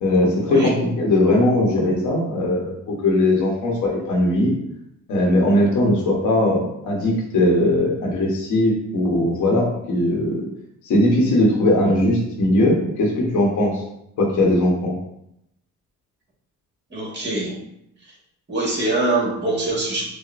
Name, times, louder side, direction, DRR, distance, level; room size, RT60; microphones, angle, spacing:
voice 1, 0.0-4.5 5.1-10.5 10.8-13.8 14.2-14.9, left 1 dB, 75° left, -1 dB, 1.1 m, -19 dB
voice 2, 16.9-17.6 18.0-18.1 18.5-20.0, right 2 dB, 35° right, -3 dB, 1.5 m, -23 dB
6.2 x 2.1 x 2.5 m, 0.79 s
cardioid pair, 90°, 30 cm